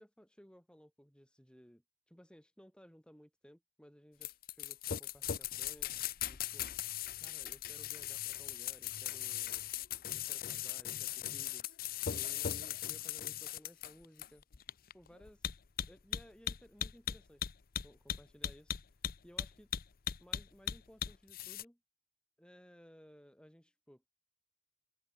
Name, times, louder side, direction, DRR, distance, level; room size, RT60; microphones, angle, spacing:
voice 1, 0.0-5.9 6.3-6.7 7.2-9.7 10.1-11.8 12.1-14.4 14.9-15.4 15.9-17.5 17.8-18.8 19.2-19.7 20.2-21.8 22.4-24.0, equal, 5° left, 4.3 m, -59 dB
sound 1, 4.2-21.6, left 10 dB, 45° left, 0.6 m, -39 dB
head